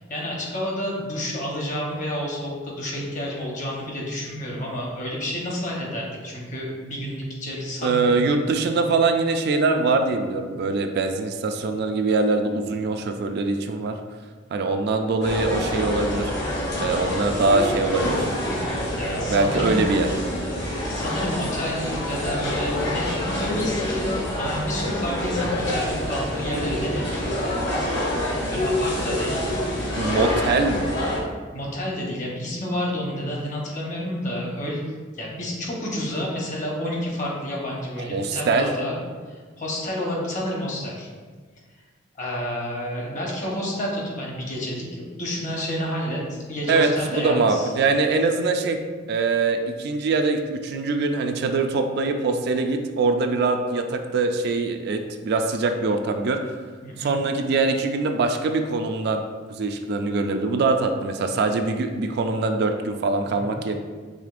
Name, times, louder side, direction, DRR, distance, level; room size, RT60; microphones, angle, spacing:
voice 1, 0.0-8.3 18.5-18.7 18.9-19.8 20.9-27.4 28.5-29.7 31.5-39.0 39.3-41.1 42.2-47.7 56.8-57.1 63.2-63.6, equal, 40° left, -2 dB, 0.9 m, -30 dB
voice 2, 7.8-13.9 14.5-16.3 16.8-18.3 19.3-20.1 30.0-30.9 38.0-38.7 46.7-48.8 49.1-56.4 57.0-59.2 59.5-63.7, right 3 dB, 55° right, 6 dB, 0.3 m, -23 dB
sound 1, 15.2-31.2, left 1 dB, 55° left, 1.1 m, -26 dB
5.0 x 3.3 x 2.4 m, 1.5 s
head